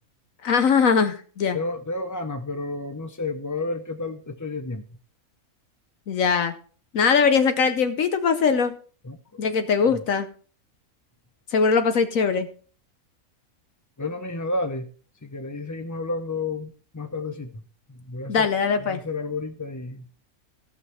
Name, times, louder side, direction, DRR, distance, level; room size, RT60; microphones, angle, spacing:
voice 1, 0.4-1.6 6.1-6.5 6.9-8.8 9.4-10.3 11.5-12.5 18.3-19.0, left 5 dB, 65° left, 9 dB, 1.2 m, -21 dB
voice 2, 1.5-4.8 9.0-9.4 9.9-10.0 14.0-14.9 15.2-17.6 17.9-20.1, left 3 dB, 25° left, 7 dB, 0.4 m, -31 dB
15.0 x 6.1 x 5.5 m, 0.42 s
omnidirectional pair, 1.5 m